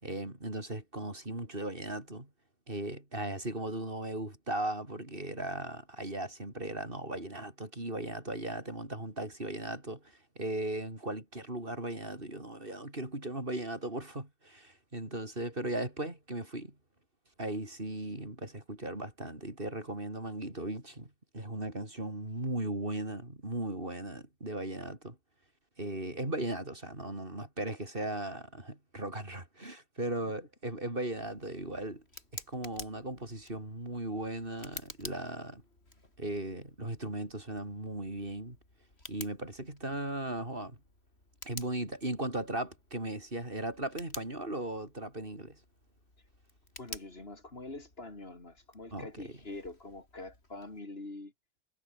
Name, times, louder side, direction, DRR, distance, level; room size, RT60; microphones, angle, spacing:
voice 1, 0.0-2.3 2.7-10.0 10.4-16.7 17.4-25.2 25.8-32.0 32.3-35.6 36.2-38.6 39.1-40.8 41.4-45.6 48.9-49.1, right 1 dB, 60° right, 5.6 m, -37 dB
Tick, 31.1-50.8, left 2 dB, 90° left, 5.4 m, -52 dB
voice 2, 46.8-51.3, left 2 dB, 70° left, 3.9 m, -45 dB
omnidirectional pair, 1.1 m